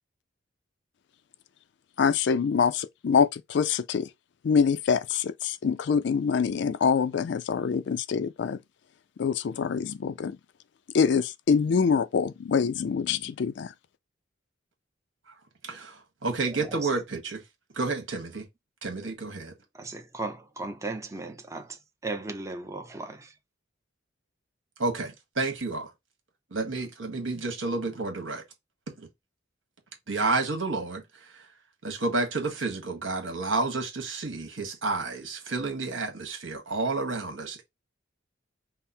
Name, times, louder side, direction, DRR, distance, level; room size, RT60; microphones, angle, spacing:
voice 1, 2.0-4.0 4.4-8.6 9.2-10.4 10.9-13.7, left 6 dB, 60° left, 0.3 m, -25 dB
voice 2, 15.6-17.4 17.7-18.5 18.8-19.5 24.8-25.9 26.5-28.4 28.9-29.1 30.1-31.5 31.8-37.6, right 3 dB, 75° right, 1.5 m, -30 dB
voice 3, 16.5-16.9 19.7-23.4, right 2 dB, 15° right, 0.6 m, -37 dB
5.5 x 2.0 x 4.3 m
head